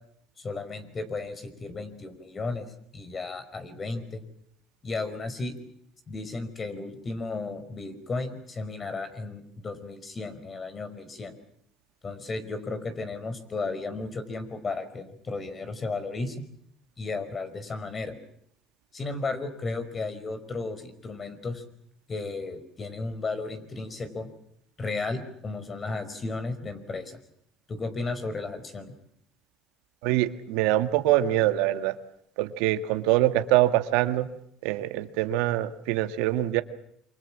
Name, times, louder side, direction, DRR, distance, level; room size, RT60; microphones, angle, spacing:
voice 1, 0.4-2.7 2.9-4.2 4.8-5.5 6.1-11.3 12.0-16.3 17.0-18.1 18.9-21.6 22.1-24.3 24.8-27.2 27.7-28.9, left 3 dB, 30° left, 11 dB, 5.0 m, -34 dB
voice 2, 30.0-31.9 32.4-34.3 34.6-36.6, right 14 dB, 85° right, 9 dB, 1.7 m, -24 dB
27.0 x 26.0 x 7.4 m, 0.71 s
supercardioid pair, 95°, 0 cm